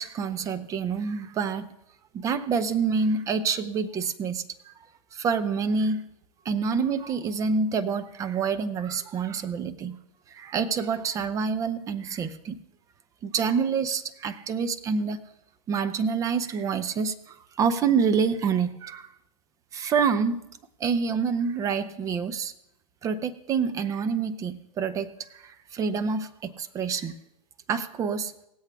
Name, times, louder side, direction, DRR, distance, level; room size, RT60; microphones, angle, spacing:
voice 1, 0.0-1.7 2.1-4.7 5.1-6.1 6.4-10.0 10.3-12.6 13.2-15.2 15.7-19.1 19.7-20.4 20.8-22.5 23.0-27.1 27.7-28.3, right 5 dB, 15° right, 12 dB, 0.6 m, -27 dB
18.5 x 8.0 x 3.5 m, 0.81 s
hypercardioid pair, 140°, 20 cm